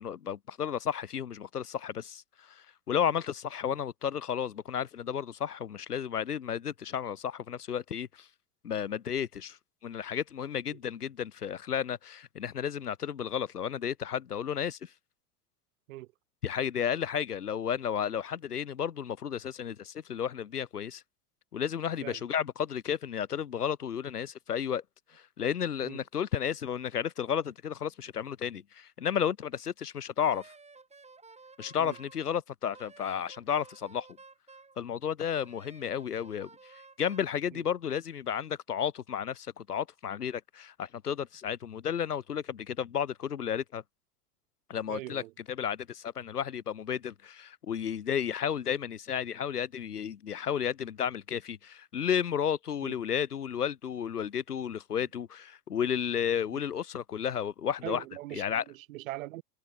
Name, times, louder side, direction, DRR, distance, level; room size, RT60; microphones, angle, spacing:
voice 1, 0.0-8.3 8.6-14.9 16.4-21.0 21.5-24.8 25.1-30.5 31.6-34.1 34.8-43.8 44.7-45.2 45.5-58.0 58.3-58.6, left 8 dB, 80° left, 0.8 m, -33 dB
Wind instrument woodwind instrument, 30.2-32.2 32.7-34.8 35.3-37.3, right 4 dB, 15° right, 7.9 m, -54 dB
voice 2, 44.9-45.3 52.8-53.0 57.8-59.4, right 18 dB, 60° right, 5.7 m, -41 dB
figure-of-eight pair, 75°, 45 cm